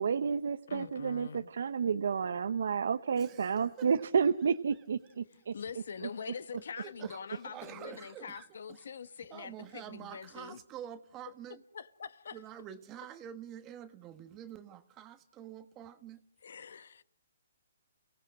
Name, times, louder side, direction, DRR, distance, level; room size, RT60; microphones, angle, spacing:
voice 1, 0.0-5.5, right 6 dB, 70° right, 0.9 m, -30 dB
voice 2, 0.7-1.5 5.5-10.6 11.7-12.4 16.4-17.0, left 6 dB, 70° left, 1.3 m, -44 dB
voice 3, 3.1-3.9 6.8-8.9 9.3-11.6 12.3-16.2, right 10 dB, 25° right, 1.3 m, -47 dB
29.5 x 17.5 x 6.1 m
hypercardioid pair, 145°, 0 cm